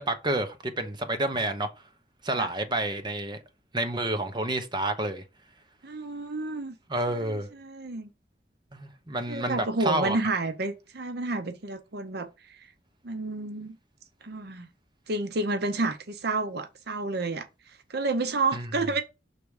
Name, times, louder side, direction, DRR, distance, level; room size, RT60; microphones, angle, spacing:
voice 1, 0.0-1.7 2.2-3.4 3.7-5.2 6.9-7.5 8.7-10.2 18.5-18.7, right 1 dB, 25° right, 0.9 m, -29 dB
voice 2, 5.8-6.7 7.1-8.1 9.3-12.7 13.0-13.8 14.2-14.7 15.1-19.0, right 3 dB, 65° right, 0.8 m, -30 dB
6.7 x 3.5 x 4.8 m
head